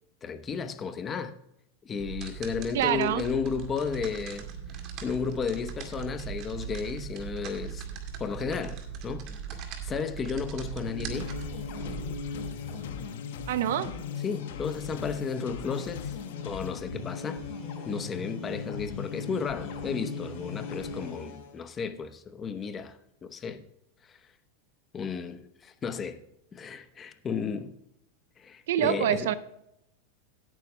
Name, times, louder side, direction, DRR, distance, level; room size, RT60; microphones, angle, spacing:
voice 1, 0.2-1.3 1.8-7.8 8.2-11.3 14.2-16.2 16.4-17.4 17.8-23.6 24.0-24.2 24.9-26.2 26.5-27.7 28.4-29.3, left 6 dB, 20° left, 0.9 m, -33 dB
sound 1, 2.0-12.2, right 8 dB, 40° right, 2.1 m, -39 dB
voice 2, 2.7-3.2 13.5-13.9 28.7-29.3, right 11 dB, 75° right, 0.6 m, -26 dB
sound 2, 10.5-21.6, left 5 dB, 55° left, 4.0 m, -38 dB
sound 3, 11.1-16.7, left 7 dB, 80° left, 1.3 m, -45 dB
17.0 x 9.1 x 2.2 m
supercardioid pair, 150°, 0 cm